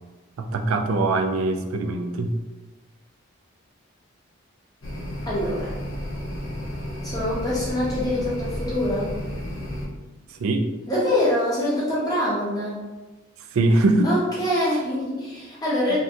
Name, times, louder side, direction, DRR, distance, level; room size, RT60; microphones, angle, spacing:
voice 1, 0.4-2.3 10.3-10.7 13.5-14.1 15.9-16.0, right 2 dB, 90° right, 6 dB, 0.4 m, -22 dB
sound 1, 4.8-9.9, equal, 80° left, 0.7 m, -32 dB
voice 2, 5.3-5.8 7.0-9.1 10.9-12.8 14.0-16.0, left 1 dB, 20° left, -6 dB, 0.6 m, -24 dB
2.6 x 2.5 x 3.4 m, 1.2 s
head